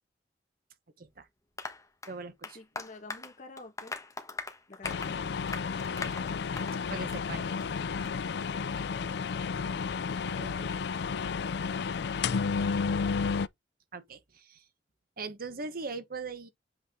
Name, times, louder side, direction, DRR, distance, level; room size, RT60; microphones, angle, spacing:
voice 1, 1.0-1.3 2.1-2.6 6.9-7.5 10.2-10.7 13.9-14.7 15.2-16.5, right 4 dB, 55° right, 1.1 m, -40 dB
Applause, 1.6-6.8 7.1-7.3 7.6-7.7 8.0-8.1, left 3 dB, 20° left, 1.3 m, -41 dB
voice 2, 2.5-3.9 4.7-5.8, left 2 dB, 45° left, 1.5 m, -50 dB
sound 1, 4.8-13.5, left 5 dB, 65° left, 0.4 m, -32 dB
7.9 x 4.2 x 3.7 m
head